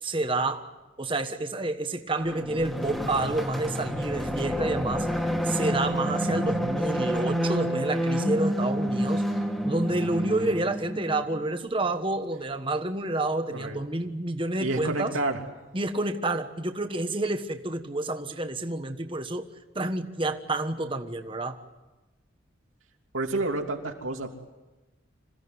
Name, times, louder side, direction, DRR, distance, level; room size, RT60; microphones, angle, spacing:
voice 1, 0.0-0.7 1.0-9.3 9.6-15.2 15.7-19.5 19.7-21.6, right 2 dB, 25° right, 7 dB, 1.3 m, -29 dB
sound 1, 2.2-11.4, equal, ahead, 2.0 m, -29 dB
voice 2, 14.6-15.4 23.1-24.3, right 2 dB, 85° right, 2 dB, 3.1 m, -29 dB
26.5 x 16.0 x 9.6 m, 1.1 s
head